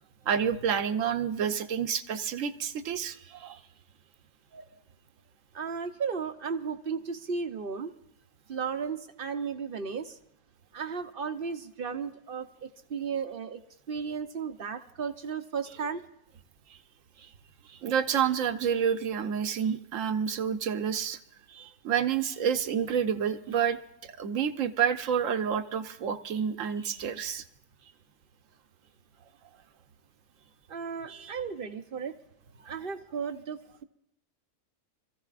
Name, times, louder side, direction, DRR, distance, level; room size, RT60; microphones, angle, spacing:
voice 1, 0.3-3.6 4.5-4.6 16.7-16.8 17.2-17.3 17.7-21.2 21.8-27.4, right 8 dB, 65° right, 10 dB, 1.1 m, -29 dB
voice 2, 5.5-7.9 8.5-10.2 10.7-12.5 12.9-13.6 13.9-16.0 21.5-21.7 30.7-32.1 32.7-33.8, right 6 dB, 50° right, 8 dB, 0.8 m, -34 dB
26.0 x 15.0 x 2.4 m, 0.82 s
omnidirectional pair, 1.5 m